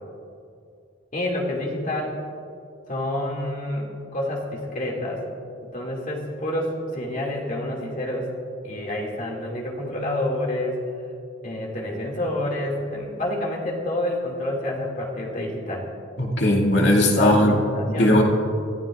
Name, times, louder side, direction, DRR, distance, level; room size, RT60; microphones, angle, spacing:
voice 1, 1.1-2.1 2.9-5.2 5.7-8.3 8.6-10.8 11.4-15.9 17.0-18.2, left 1 dB, 45° left, -2 dB, 2.5 m, -28 dB
voice 2, 16.2-17.5 17.8-18.2, left 1 dB, 60° left, -1 dB, 2.5 m, -18 dB
25.5 x 15.5 x 2.5 m, 2.5 s
head